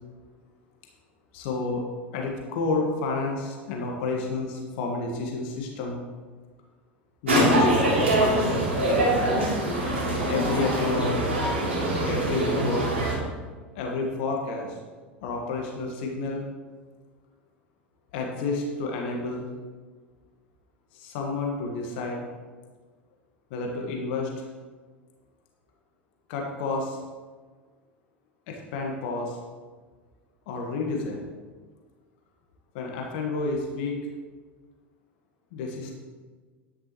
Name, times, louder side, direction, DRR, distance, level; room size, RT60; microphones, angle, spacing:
voice 1, 1.3-1.8 2.1-6.0 7.2-8.7 10.3-11.2 12.1-12.8 13.7-14.8 15.2-16.4 18.1-19.5 20.9-22.2 23.5-24.3 26.3-27.0 28.5-29.4 30.5-31.3 32.7-34.0 35.5-35.9, left 3 dB, 60° left, 0 dB, 1.7 m, -30 dB
sound 1, 7.3-13.1, right 1 dB, 80° right, 3.2 m, -24 dB
11.0 x 10.5 x 3.1 m, 1.4 s
figure-of-eight pair, 80°, 6 cm